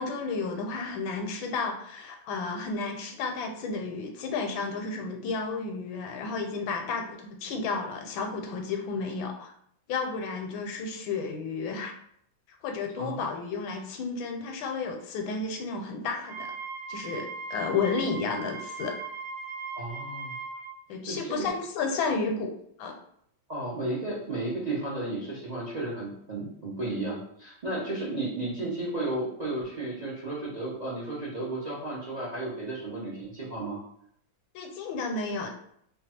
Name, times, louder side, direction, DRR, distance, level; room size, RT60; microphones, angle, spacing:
voice 1, 0.0-9.5 9.9-11.9 12.6-16.5 16.9-18.9 20.9-22.5 22.8-22.9 34.5-35.5, left 4 dB, 85° left, 3 dB, 1.4 m, -32 dB
voice 2, 13.0-13.3 19.7-20.4 21.1-21.5 23.5-33.8, right 2 dB, 80° right, -7 dB, 0.3 m, -33 dB
Wind instrument woodwind instrument, 16.2-20.7, right 4 dB, 65° right, 1.1 m, -38 dB
3.2 x 2.3 x 4.1 m, 0.69 s
omnidirectional pair, 2.2 m